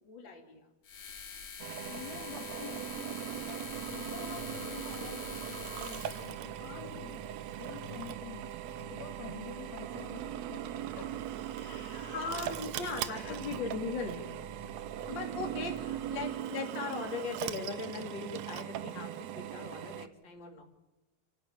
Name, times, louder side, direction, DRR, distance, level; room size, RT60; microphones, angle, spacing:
voice 1, 0.0-0.7 12.1-14.2 15.1-15.8 16.1-20.6, left 4 dB, 30° left, 1 dB, 3.4 m, -39 dB
sound 1, 0.8-6.4, left 7 dB, 50° left, 2.7 m, -45 dB
Drill, 1.6-20.1, right 11 dB, 85° right, 1.5 m, -40 dB
voice 2, 1.9-3.2 3.5-7.2 7.5-8.6 8.9-12.2 12.9-13.4 15.6-16.0, left 7 dB, 85° left, 4 dB, 3.9 m, -48 dB
sound 2, 3.6-16.3, right 4 dB, 40° right, 5.5 m, -51 dB
30.0 x 11.0 x 8.8 m, 1.0 s
omnidirectional pair, 4.2 m